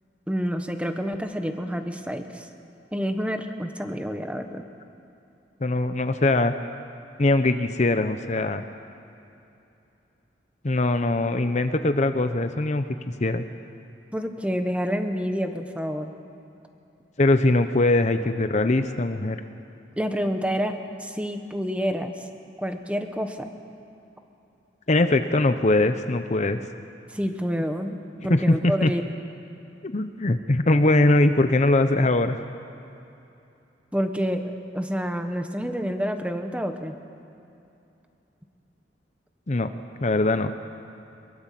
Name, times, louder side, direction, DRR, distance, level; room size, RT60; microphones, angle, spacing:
voice 1, 0.3-2.5 2.9-4.6 14.1-16.1 20.0-20.7 21.0-22.1 22.6-23.5 27.1-29.0 33.9-36.9, equal, 5° right, 6 dB, 1.3 m, -28 dB
voice 2, 5.6-6.5 7.2-8.6 10.6-13.4 17.2-19.4 24.9-26.6 28.2-28.9 29.8-32.4 39.5-39.7 40.0-40.5, left 2 dB, 40° left, 9 dB, 0.8 m, -21 dB
23.0 x 22.5 x 7.6 m, 2.8 s
head